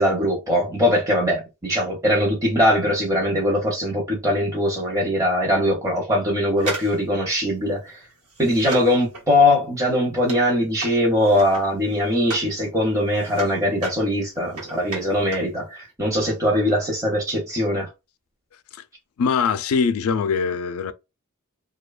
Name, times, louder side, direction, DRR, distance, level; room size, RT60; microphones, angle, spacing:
voice 1, 0.0-8.0 8.4-17.9, left 1 dB, 15° right, 0.6 m, -21 dB
sound 1, 6.6-12.5 12.9-15.6 15.8-15.9, right 2 dB, 90° right, 1.2 m, -36 dB
voice 2, 19.2-20.9, left 5 dB, 70° left, 0.4 m, -22 dB
2.7 x 2.2 x 2.3 m
head